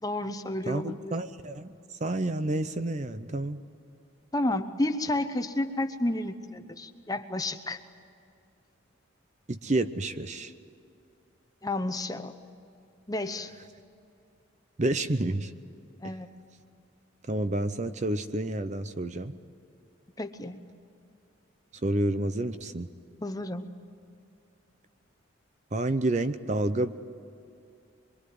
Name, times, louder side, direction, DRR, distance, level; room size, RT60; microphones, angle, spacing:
voice 1, 0.0-1.1 4.3-7.8 11.6-12.3 13.1-13.5 16.0-16.3 20.2-20.6 23.2-23.7, left 1 dB, 15° left, 8 dB, 0.9 m, -31 dB
voice 2, 0.7-3.6 9.5-10.5 14.8-15.5 16.0-16.2 17.3-19.3 21.8-22.9 25.7-26.9, right 1 dB, 35° right, 11 dB, 0.7 m, -29 dB
24.5 x 23.5 x 9.5 m, 2.5 s
head